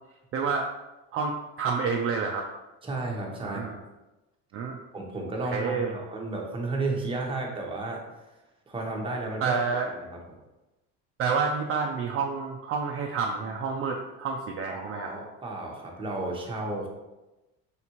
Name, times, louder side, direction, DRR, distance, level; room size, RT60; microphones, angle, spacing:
voice 1, 0.3-0.7 1.1-2.5 3.4-3.8 4.5-4.8 5.4-5.9 9.4-9.9 11.2-15.1, right 5 dB, 45° right, 1 dB, 0.5 m, -29 dB
voice 2, 2.8-3.8 4.9-8.0 8.7-9.6 10.0-10.2 14.7-16.9, right 2 dB, 15° right, -1 dB, 0.9 m, -33 dB
4.2 x 3.5 x 2.9 m, 1.0 s
cardioid pair, 110°, 33 cm